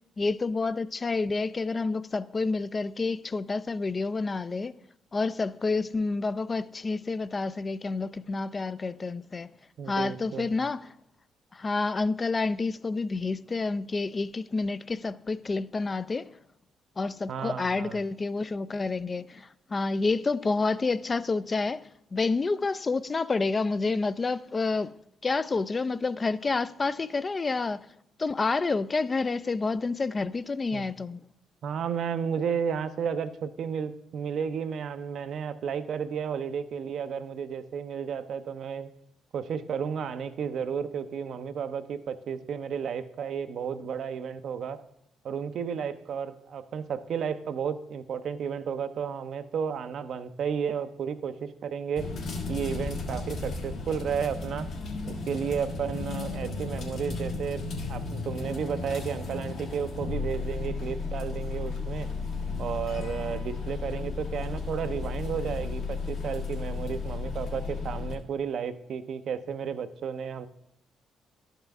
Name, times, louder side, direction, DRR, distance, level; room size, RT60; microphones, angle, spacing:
voice 1, 0.2-4.8 5.1-9.5 9.9-10.9 11.5-16.3 17.0-25.0 25.2-27.9 28.2-31.2, left 3 dB, 35° left, 0.3 m, -29 dB
voice 2, 9.8-10.6 17.3-18.0 30.7-30.9 31.6-38.9 39.3-44.8 45.2-52.1 52.5-54.7 55.1-62.1 62.6-70.5, right 7 dB, 65° right, 0.5 m, -33 dB
sound 1, 52.0-68.2, left 4 dB, 75° left, 1.8 m, -34 dB
11.5 x 5.5 x 3.5 m
supercardioid pair, 60°, 0 cm